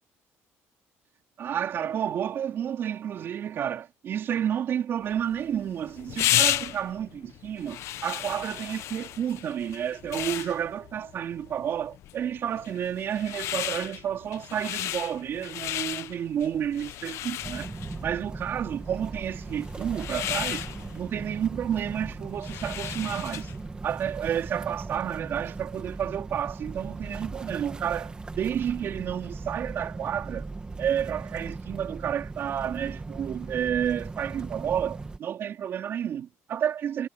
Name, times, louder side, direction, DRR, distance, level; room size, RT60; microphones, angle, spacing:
voice 1, 1.4-17.7 18.0-20.7 20.9-23.5 23.8-30.5 30.8-37.1, right 9 dB, 50° right, 4.3 m, -30 dB
sound 1, 5.1-23.6, left 13 dB, 65° left, 1.1 m, -34 dB
sound 2, 17.4-35.2, right 3 dB, 20° right, 2.2 m, -38 dB
cardioid pair, 130°, 5 cm